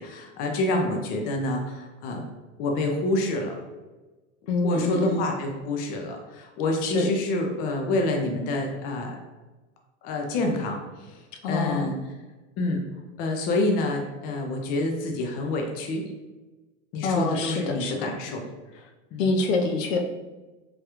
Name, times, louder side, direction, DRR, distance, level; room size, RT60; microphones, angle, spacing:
voice 1, 0.0-2.3 2.6-3.6 4.6-9.2 10.0-11.2 11.5-12.0 12.6-12.8 13.2-16.0 16.9-18.5 19.1-19.3, left 2 dB, 25° left, 2 dB, 0.3 m, -27 dB
voice 2, 4.5-5.2 6.8-7.1 11.4-11.9 17.0-18.1 19.2-20.0, left 3 dB, 80° left, 4 dB, 0.6 m, -25 dB
3.4 x 2.3 x 2.9 m, 1.2 s
hypercardioid pair, 125°, 38 cm